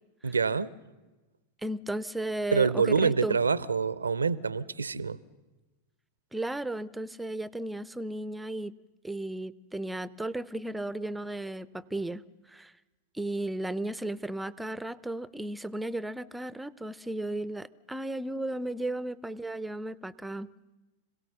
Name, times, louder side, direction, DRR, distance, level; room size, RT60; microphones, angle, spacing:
voice 1, 0.2-0.7 2.5-5.2, right 5 dB, 85° right, 19 dB, 0.6 m, -26 dB
voice 2, 1.6-3.4 6.3-8.7 9.0-12.2 12.5-12.7 13.1-20.5, right 1 dB, 5° right, 18 dB, 0.6 m, -35 dB
26.5 x 17.0 x 6.9 m, 1.2 s
figure-of-eight pair, 95°, 0 cm